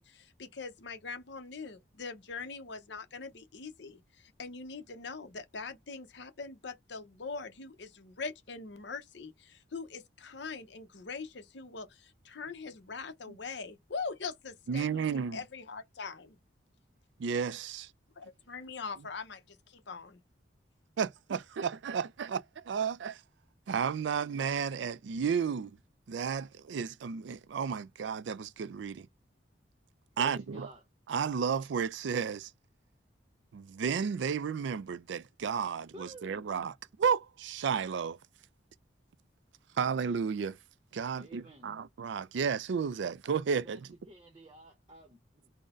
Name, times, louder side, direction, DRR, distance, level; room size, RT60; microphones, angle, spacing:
voice 1, 0.0-16.4 18.2-20.2, left 4 dB, 65° left, 0.8 m, -42 dB
voice 2, 14.7-15.4 17.2-17.9 21.0-23.2 23.7-25.8 26.1-29.1 30.2-30.7 31.1-32.5 33.5-36.7 37.0-38.2 39.7-40.6 40.9-43.9, right 6 dB, 70° right, 0.4 m, -32 dB
voice 3, 30.1-30.8 35.9-36.5 41.1-41.7 43.6-43.8 44.1-45.5, equal, 25° right, 0.7 m, -51 dB
3.9 x 2.1 x 3.6 m
head